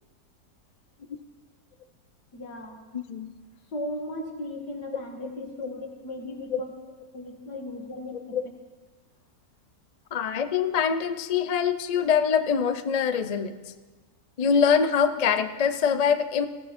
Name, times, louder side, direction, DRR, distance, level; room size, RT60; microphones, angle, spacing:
voice 1, 2.3-2.8 3.7-6.7 7.1-8.4, left 1 dB, 80° left, 1 dB, 2.6 m, -36 dB
voice 2, 2.9-3.3 6.5-6.6 8.3-8.4 10.1-13.5 14.4-16.5, left 7 dB, 55° left, 10 dB, 0.4 m, -24 dB
19.5 x 15.0 x 4.3 m, 1.3 s
omnidirectional pair, 1.7 m